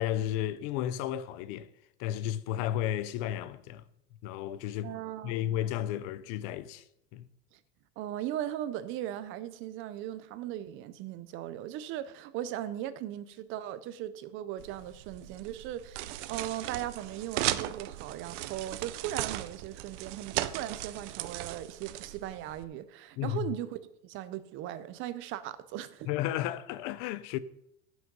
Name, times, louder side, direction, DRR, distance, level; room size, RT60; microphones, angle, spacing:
voice 1, 0.0-1.7 2.0-3.8 4.2-4.9 5.2-6.8 7.1-7.3 23.2-23.4 26.1-27.4, left 12 dB, 45° left, 0.5 m, -33 dB
voice 2, 4.8-5.6 7.5-7.6 8.0-23.8 24.0-26.1, right 12 dB, 35° right, 0.6 m, -38 dB
sound 1, 14.6-22.6, right 15 dB, 80° right, 0.7 m, -37 dB
11.0 x 6.2 x 5.3 m
cardioid pair, 170°, 36 cm